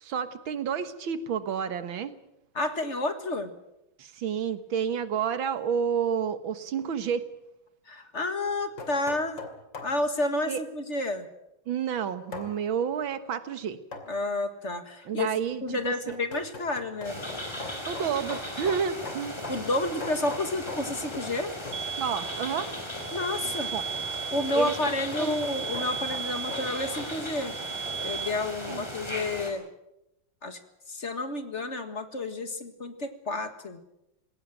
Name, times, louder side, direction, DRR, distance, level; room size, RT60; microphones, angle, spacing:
voice 1, 0.0-2.1 4.0-7.3 10.5-10.6 11.7-13.8 15.1-16.2 17.9-19.4 21.9-22.7 23.7-23.8 24.5-24.8 25.2-25.3 28.7-28.9, right 7 dB, 85° right, 12 dB, 2.1 m, -30 dB
voice 2, 2.6-3.5 7.9-9.4 9.8-11.3 14.1-15.3 15.6-17.2 19.5-21.5 23.1-23.7 24.3-27.6 28.0-29.6 30.4-30.6 30.9-33.8, left 2 dB, 40° left, 9 dB, 1.9 m, -30 dB
sound 1, 8.4-10.0 12.3-12.5 13.9-14.2 15.5-21.4 21.7-21.9 24.0-27.2, left 4 dB, 70° left, 3.3 m, -41 dB
sound 2, 17.0-29.5, left 1 dB, 15° left, 4.5 m, -37 dB
sound 3, 21.7-28.3, right 7 dB, 45° right, 1.3 m, -36 dB
20.5 x 18.0 x 9.1 m, 0.87 s
omnidirectional pair, 2.1 m